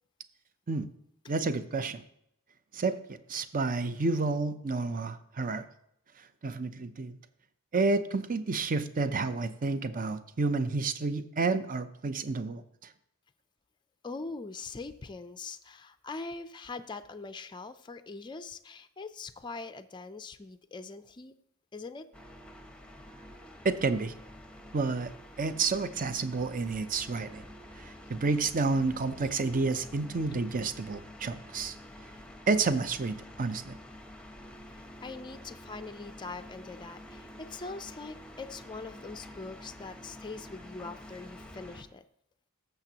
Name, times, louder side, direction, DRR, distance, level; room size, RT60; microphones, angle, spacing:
voice 1, 1.3-2.0 2.7-5.7 6.4-7.2 7.7-12.9 23.6-24.1 24.7-25.1 25.4-27.5 27.8-31.8 32.5-33.8, right 3 dB, 40° right, 12 dB, 0.6 m, -30 dB
voice 2, 14.0-21.3 21.7-22.1 34.7-42.0, left 3 dB, 20° left, 10 dB, 0.4 m, -42 dB
sound 1, 22.1-41.8, left 1 dB, 5° left, 0.8 m, -48 dB
15.0 x 6.8 x 2.9 m, 0.73 s
head